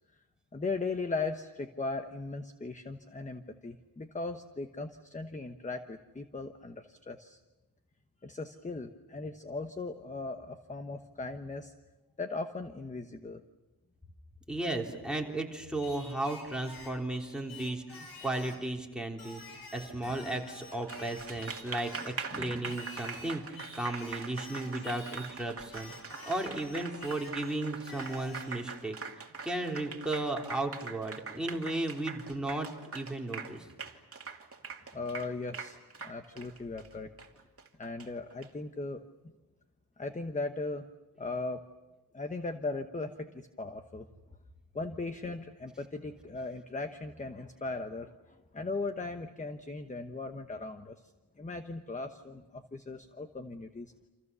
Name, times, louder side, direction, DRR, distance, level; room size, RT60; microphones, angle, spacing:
voice 1, 0.5-7.4 8.2-11.7 12.2-13.4 22.3-22.8 34.9-37.1 37.8-39.0 40.0-40.9 41.2-41.6 42.1-44.1 44.7-51.0 51.4-53.9, left 3 dB, 20° left, 8 dB, 1.1 m, -38 dB
voice 2, 14.5-29.0 29.4-33.7, right 2 dB, ahead, 0 dB, 3.5 m, -35 dB
Singing, 15.8-18.7 19.2-22.2 22.6-25.4 25.7-28.6, left 2 dB, 65° left, 5.9 m, -49 dB
Applause, 20.7-38.5, right 5 dB, 35° right, 2.5 m, -43 dB
29.0 x 27.5 x 7.0 m, 1.1 s
wide cardioid pair, 155°, 40 cm